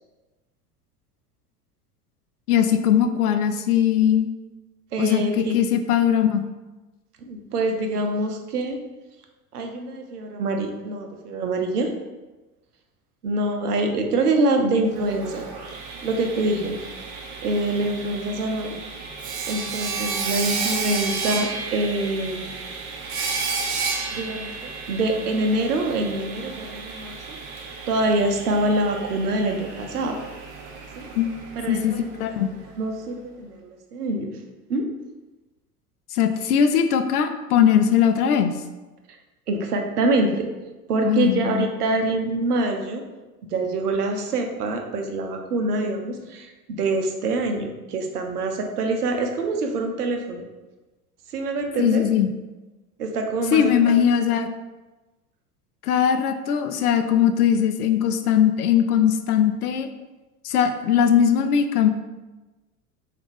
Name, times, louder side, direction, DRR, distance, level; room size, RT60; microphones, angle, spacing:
voice 1, 2.5-4.3 5.0-6.5 31.2-31.3 31.7-32.5 36.1-38.6 41.0-41.7 51.8-52.3 53.5-54.5 55.8-59.9 60.4-61.9, left 9 dB, 75° left, 8 dB, 0.5 m, -20 dB
voice 2, 4.9-5.6 7.2-8.8 9.5-11.9 13.2-15.5 16.0-16.8 17.4-18.8 19.5-22.7 24.1-27.4 27.9-30.2 31.0-31.1 31.6-32.4 32.8-34.3 34.7-34.8 39.1-39.2 39.5-40.5 40.9-43.0 43.5-50.5 51.3-52.0 53.0-53.9, right 2 dB, 75° right, 4 dB, 0.7 m, -25 dB
Sawing, 14.8-32.7, right 4 dB, 40° right, 0.6 m, -32 dB
3.9 x 2.4 x 3.6 m, 1.1 s
figure-of-eight pair, 75°, 46 cm